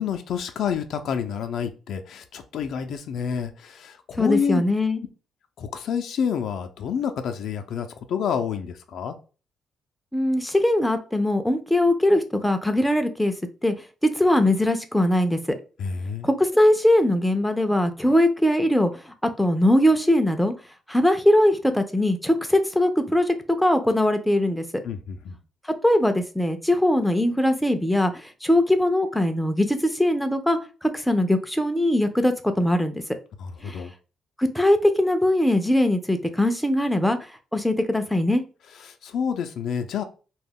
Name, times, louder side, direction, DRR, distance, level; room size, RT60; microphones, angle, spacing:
voice 1, 0.0-4.6 5.6-9.1 15.8-16.3 24.8-25.4 33.4-33.9 38.9-40.0, left 7 dB, 70° left, 0.4 m, -28 dB
voice 2, 4.2-5.0 10.1-13.3 13.6-13.7 14.0-15.4 16.2-20.5 20.9-24.6 25.8-33.0 33.6-33.8 34.4-37.2 37.5-38.4, left 1 dB, 5° left, 0.4 m, -21 dB
2.2 x 2.0 x 3.4 m
cardioid pair, 90°, 0 cm